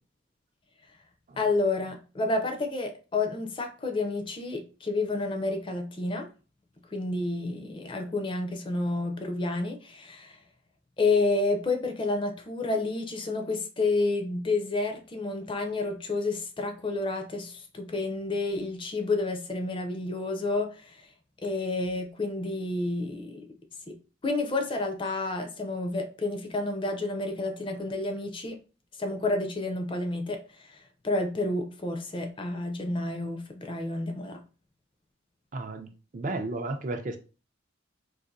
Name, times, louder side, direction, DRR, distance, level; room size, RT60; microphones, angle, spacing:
voice 1, 1.4-6.3 6.9-10.4 11.0-21.1 21.4-23.5 23.9-24.0 24.2-28.6 29.0-34.4, left 2 dB, 25° left, 5 dB, 0.4 m, -30 dB
voice 2, 35.5-37.2, right 2 dB, 40° right, 6 dB, 0.4 m, -33 dB
4.0 x 2.5 x 2.5 m, 0.35 s
head